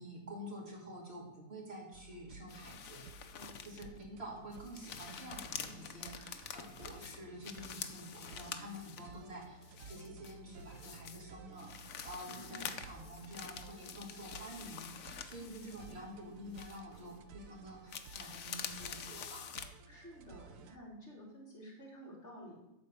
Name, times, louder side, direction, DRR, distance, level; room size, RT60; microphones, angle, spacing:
voice 1, 0.0-3.0 3.6-19.5, equal, 45° right, -1 dB, 2.9 m, -49 dB
sound 1, 1.9-20.8, right 5 dB, 70° right, 1.0 m, -55 dB
sound 2, 2.5-4.0 4.4-9.2 9.6-11.2 11.6-16.2 16.5-17.2 17.9-19.7, left 8 dB, 70° left, 1.2 m, -47 dB
voice 2, 3.3-3.7 6.1-6.6 9.2-9.4 12.3-12.7 19.9-22.6, equal, 50° left, -4 dB, 4.2 m, -53 dB
12.5 x 4.4 x 8.2 m, 0.92 s
omnidirectional pair, 1.6 m